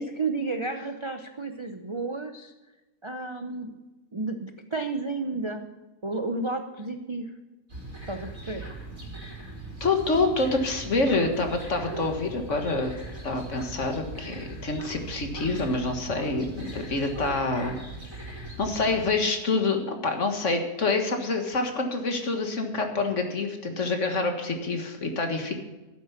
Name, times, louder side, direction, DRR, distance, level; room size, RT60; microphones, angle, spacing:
voice 1, 0.0-2.5 3.0-3.8 4.1-5.7 6.0-7.3 8.1-8.6, right 3 dB, 30° right, 6 dB, 0.5 m, -32 dB
sound 1, 7.7-19.1, right 2 dB, 60° right, 3.7 m, -40 dB
voice 2, 9.8-12.9 13.2-17.8 18.2-25.5, left 3 dB, 50° left, 5 dB, 1.9 m, -27 dB
12.0 x 9.3 x 5.9 m, 1.1 s
omnidirectional pair, 1.6 m